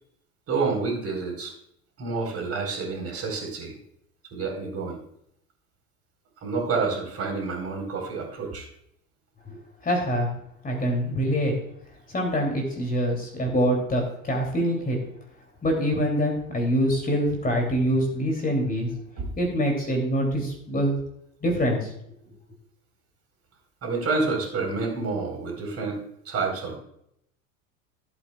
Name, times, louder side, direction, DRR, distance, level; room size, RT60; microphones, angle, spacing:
voice 1, 0.5-1.5 2.0-3.7 4.3-5.0 6.4-8.7 19.2-19.3 23.8-26.0 26.2-26.8, right 4 dB, 35° right, 1 dB, 4.2 m, -28 dB
voice 2, 9.5-10.3 10.6-11.5 12.1-15.0 15.6-18.9 19.4-21.0 21.4-21.9, equal, 20° left, 1 dB, 2.8 m, -25 dB
16.0 x 8.3 x 2.3 m, 0.73 s
hypercardioid pair, 80°, 43 cm